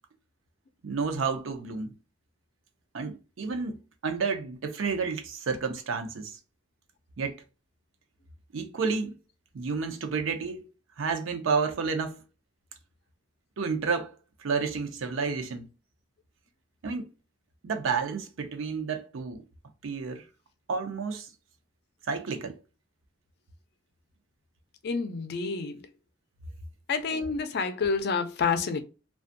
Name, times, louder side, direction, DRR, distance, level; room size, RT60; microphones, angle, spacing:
voice 1, 0.8-1.9 2.9-6.4 7.2-7.4 8.5-9.1 9.5-10.7 11.0-12.2 13.6-14.1 14.4-15.7 16.8-17.1 17.6-19.4 19.8-20.2 20.7-21.3 22.1-22.6, right 5 dB, 90° right, 0.5 m, -30 dB
voice 2, 24.8-25.8 26.9-28.8, left 5 dB, 55° left, 0.4 m, -28 dB
2.5 x 2.3 x 2.5 m
head